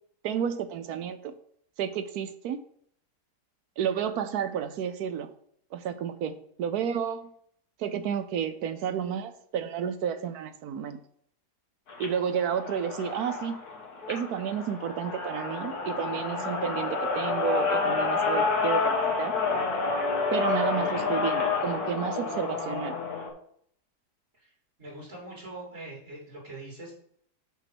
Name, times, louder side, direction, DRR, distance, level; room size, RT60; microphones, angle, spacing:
voice 1, 0.2-1.3 1.8-2.6 3.8-5.3 5.7-7.3 7.8-11.0 12.0-13.6 14.1-19.3 20.3-23.0, right 8 dB, 70° right, 10 dB, 1.1 m, -31 dB
sound 1, 11.9-23.3, left 4 dB, 60° left, 1.9 m, -29 dB
voice 2, 24.8-26.9, right 2 dB, 45° right, -5 dB, 2.8 m, -42 dB
6.0 x 5.6 x 6.0 m, 0.66 s
omnidirectional pair, 1.8 m